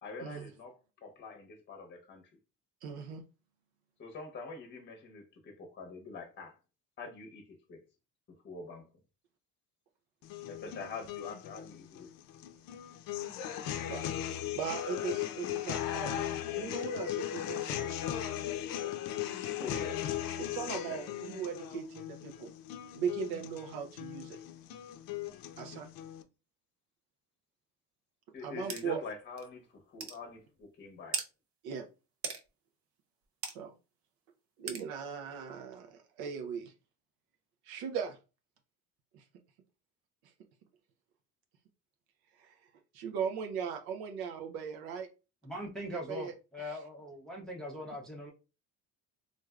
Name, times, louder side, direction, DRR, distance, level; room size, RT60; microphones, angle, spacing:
voice 1, 0.0-2.3 4.0-6.6 7.0-7.8 8.3-8.9 10.5-12.1 19.6-20.1 20.9-21.0 28.3-31.2, left 3 dB, 30° left, 0.8 m, -45 dB
voice 2, 2.8-3.2 13.6-14.1 14.5-18.1 20.4-22.5 22.9-24.4 25.6-25.9 28.4-29.0 31.6-31.9 33.5-33.7 34.6-36.7 37.6-38.2 39.1-39.2 42.4-42.7 42.9-45.1 45.9-46.3, right 7 dB, 85° right, 0.6 m, -39 dB
sound 1, 10.2-26.2, left 11 dB, 65° left, 0.5 m, -38 dB
sound 2, 28.7-28.8 29.4-29.5 30.0-30.2 31.1-31.3 32.2-32.4 33.4-33.6 34.7-34.8, right 6 dB, 40° right, 0.6 m, -36 dB
voice 3, 45.4-48.3, left 1 dB, ahead, 0.6 m, -41 dB
3.2 x 2.5 x 2.3 m
cardioid pair, 125°, 36 cm